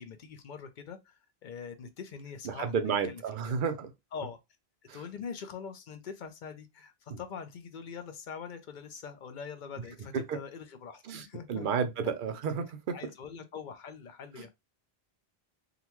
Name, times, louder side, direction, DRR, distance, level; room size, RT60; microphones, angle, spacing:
voice 1, 0.0-3.6 4.1-4.4 4.9-11.9 12.9-14.5, left 6 dB, 55° left, 0.7 m, -43 dB
voice 2, 2.4-3.9 4.9-5.0 7.1-7.2 9.8-9.9 10.1-10.4 11.0-13.0 14.4-14.5, right 6 dB, 60° right, 0.7 m, -32 dB
3.7 x 2.2 x 2.9 m
omnidirectional pair, 1.1 m